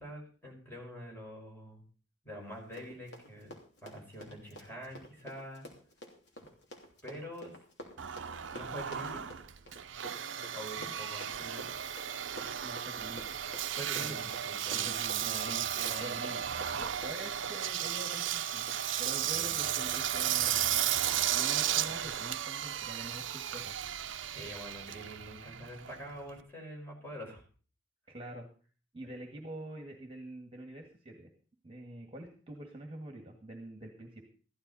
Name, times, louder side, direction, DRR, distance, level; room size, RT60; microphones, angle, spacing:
voice 1, 0.0-1.8 2.2-3.5 3.8-5.7 7.0-7.6 8.5-9.3 10.5-11.7 13.7-16.1 19.3-19.7 24.3-27.4, equal, 10° left, -1 dB, 5.1 m, -45 dB
Run, 2.6-19.2 19.5-19.6 19.9-20.2 20.5-20.6 21.1-21.2, equal, 60° left, 3.0 m, -50 dB
Engine, 8.0-26.4, right 10 dB, 70° right, 0.6 m, -34 dB
voice 2, 12.6-13.2 14.0-14.3 14.7-15.2 16.0-16.4 16.7-18.6 19.0-23.8 28.1-28.5 28.9-31.3 31.6-34.2, right 1 dB, 30° right, 3 dB, 1.9 m, -46 dB
15.0 x 13.0 x 4.2 m, 0.40 s
head